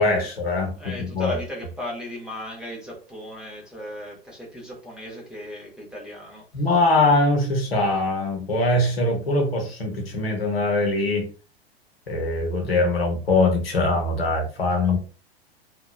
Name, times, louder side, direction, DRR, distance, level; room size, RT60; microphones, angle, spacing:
voice 1, 0.0-1.4 6.5-11.3 12.1-15.0, left 2 dB, 70° left, 0.9 m, -22 dB
voice 2, 0.8-6.4 14.9-15.0, equal, 5° right, 0.6 m, -37 dB
2.9 x 2.2 x 2.3 m
figure-of-eight pair, 90°, 31 cm